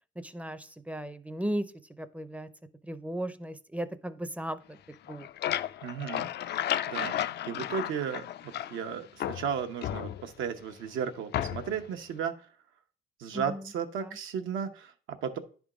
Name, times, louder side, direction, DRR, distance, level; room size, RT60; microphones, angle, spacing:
voice 1, 0.2-1.7 2.0-2.5 2.8-4.8 5.1-5.3 13.3-13.7 14.0-14.2, right 1 dB, 5° right, 12 dB, 0.5 m, -36 dB
sound 1, 4.9-8.9 9.2-10.5 11.3-11.9, left 11 dB, 60° left, 0.4 m, -33 dB
voice 2, 5.8-6.6 6.9-12.5 13.2-15.4, right 7 dB, 85° right, 6 dB, 0.9 m, -35 dB
10.0 x 3.6 x 4.9 m, 0.41 s
cardioid pair, 90°, 20 cm